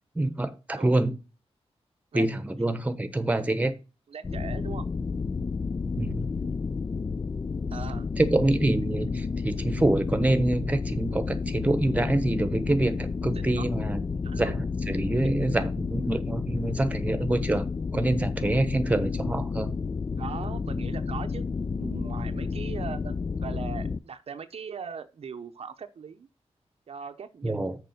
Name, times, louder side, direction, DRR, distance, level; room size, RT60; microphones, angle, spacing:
voice 1, 0.1-1.2 2.1-3.7 5.9-6.3 8.2-14.0 14.4-17.7 17.9-19.7 27.4-27.8, right 1 dB, 15° right, 1.0 m, -26 dB
voice 2, 4.1-4.9 7.7-8.1 13.3-13.6 14.2-14.5 20.2-21.4 21.8-23.1 23.4-26.3 26.9-27.7, right 6 dB, 65° right, 0.7 m, -39 dB
sound 1, 4.2-24.0, left 4 dB, 30° left, 0.3 m, -31 dB
6.8 x 5.0 x 6.4 m
wide cardioid pair, 115°, 11 cm